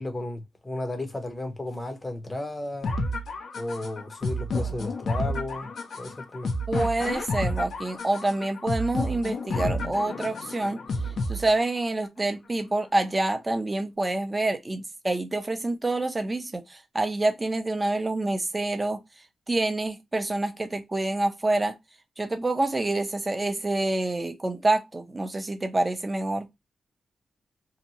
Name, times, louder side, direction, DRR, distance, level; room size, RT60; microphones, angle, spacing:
voice 1, 0.0-2.9 3.6-5.7 6.0-6.5, left 1 dB, 20° left, 0.7 m, -34 dB
sound 1, 2.8-11.8, left 1 dB, 70° left, 0.6 m, -30 dB
voice 2, 6.7-10.8 11.3-19.0 19.5-21.8 22.2-26.5, right 2 dB, 20° right, 0.6 m, -27 dB
2.8 x 2.2 x 2.6 m
wide cardioid pair, 130°, 0 cm